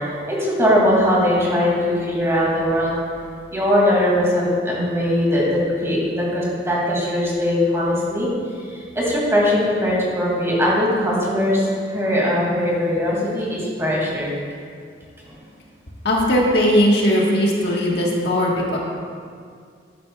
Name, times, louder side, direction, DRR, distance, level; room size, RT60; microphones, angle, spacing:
voice 1, 0.0-3.0 3.5-8.3 8.7-14.3 15.3-15.4, left 1 dB, 15° right, -5 dB, 2.5 m, -20 dB
voice 2, 16.0-18.8, equal, 65° left, -3 dB, 1.6 m, -18 dB
12.5 x 9.9 x 2.4 m, 2.1 s
head